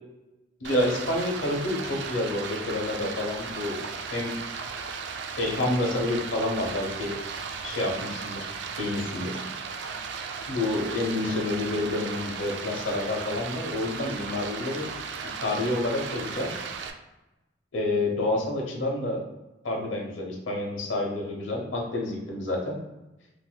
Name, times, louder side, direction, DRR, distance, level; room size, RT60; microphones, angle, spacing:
voice 1, 0.6-4.4 5.4-7.1 7.6-9.4 10.5-14.9 15.4-16.5 17.7-19.2 19.6-22.8, left 2 dB, 85° left, 0 dB, 0.9 m, -29 dB
Stream, 0.6-16.9, right 5 dB, 65° right, 0.3 m, -36 dB
3.9 x 2.6 x 2.3 m, 1.0 s
head